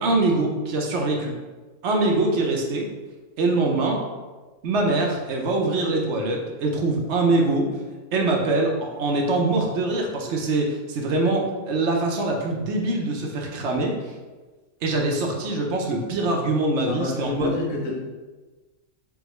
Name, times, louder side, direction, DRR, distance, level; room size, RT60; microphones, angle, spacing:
voice 1, 0.0-1.3 1.8-2.9 3.4-4.0 4.6-7.7 8.1-14.1 14.8-17.5, right 2 dB, 65° right, 1 dB, 0.9 m, -23 dB
voice 2, 16.9-18.0, left 3 dB, 85° left, -2 dB, 1.3 m, -28 dB
3.5 x 3.4 x 3.1 m, 1.3 s
omnidirectional pair, 1.4 m